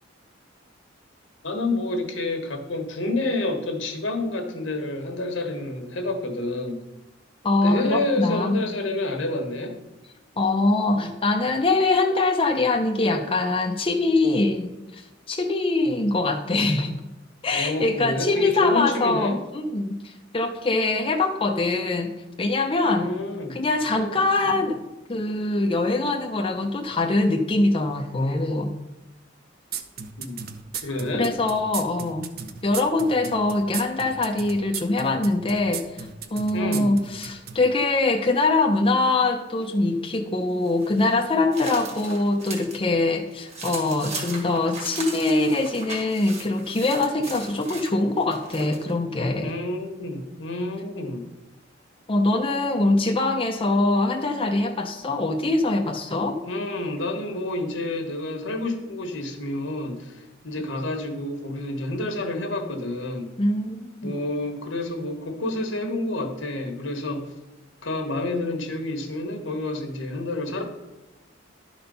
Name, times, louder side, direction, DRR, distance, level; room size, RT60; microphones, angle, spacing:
voice 1, 1.4-6.8 7.6-9.7 17.5-19.4 23.0-23.6 24.0-24.1 30.2-30.4 30.8-31.3 36.5-36.9 49.4-51.2 56.4-63.3 64.0-67.3 67.8-70.6, left 2 dB, 80° left, 5 dB, 1.4 m, -29 dB
voice 2, 7.4-8.6 10.4-15.0 15.3-17.0 17.4-22.1 22.4-23.1 23.5-28.7 31.1-32.3 32.6-49.5 52.1-56.4 63.4-64.2, left 2 dB, 30° left, 2 dB, 0.6 m, -23 dB
sound 1, 29.7-37.6, right 7 dB, 50° right, 0.7 m, -35 dB
sound 2, 40.6-42.8 43.2-48.9, right 3 dB, 35° right, 1.9 m, -38 dB
11.5 x 4.4 x 5.3 m, 0.98 s
head